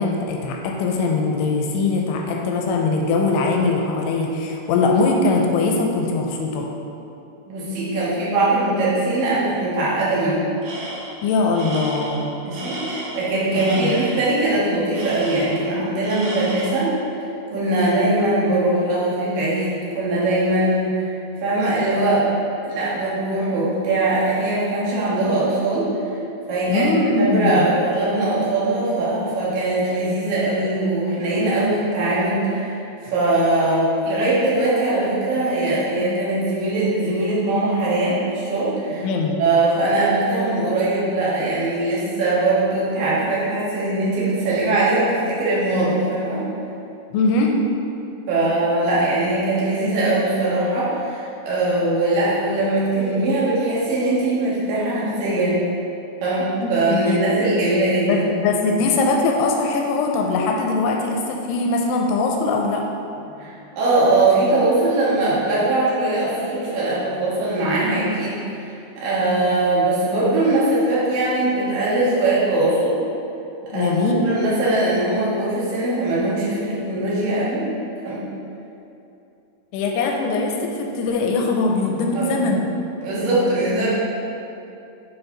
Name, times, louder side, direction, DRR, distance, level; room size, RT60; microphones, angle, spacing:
voice 1, 0.0-6.7 11.2-12.3 13.6-14.0 26.7-27.7 39.0-39.4 47.1-47.5 56.6-57.2 58.1-62.8 73.7-74.2 79.7-82.6, left 3 dB, 85° left, 1 dB, 2.6 m, -21 dB
voice 2, 7.5-10.4 12.4-16.9 17.5-21.1 21.4-22.3 22.6-25.9 26.5-32.8 33.1-39.1 39.4-46.4 48.3-55.6 56.2-58.2 63.3-73.0 73.7-74.0 74.2-77.7 78.0-78.2 82.1-82.3 83.0-83.9, right 2 dB, 65° right, -8 dB, 3.0 m, -21 dB
Tools, 10.6-11.2 11.5-14.3 14.9-15.7 16.0-16.9, right 1 dB, 85° right, 1.6 m, -33 dB
7.8 x 4.5 x 3.8 m, 2.7 s
omnidirectional pair, 4.7 m